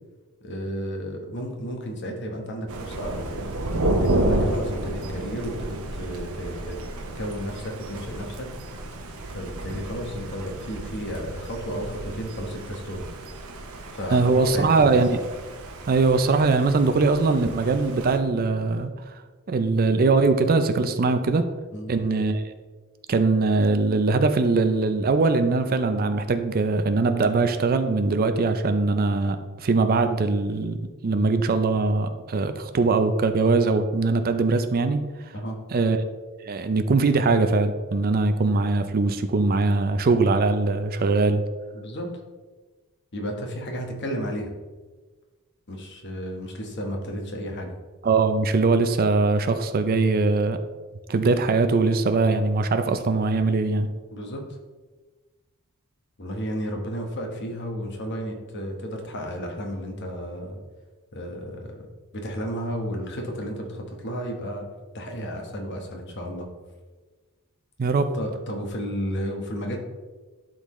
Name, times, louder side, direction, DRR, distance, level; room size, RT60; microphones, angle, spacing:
voice 1, 0.4-3.3 3.9-6.8 7.1-8.5 9.2-13.1 13.9-15.0 21.7-21.9 35.3-35.6 41.7-42.1 43.1-44.5 45.7-47.8 54.1-54.6 56.2-60.6 61.1-64.7 64.9-66.5 68.1-69.8, equal, 50° left, 2 dB, 1.2 m, -33 dB
Thunder, 2.7-18.2, right 1 dB, 70° right, 0.8 m, -31 dB
voice 2, 14.1-15.2 15.9-18.9 19.5-21.4 21.9-22.4 23.1-35.3 35.7-36.0 36.4-41.4 48.0-50.6 51.1-53.9 67.8-68.1, right 3 dB, 40° right, 9 dB, 0.4 m, -21 dB
11.5 x 3.9 x 3.1 m, 1.3 s
head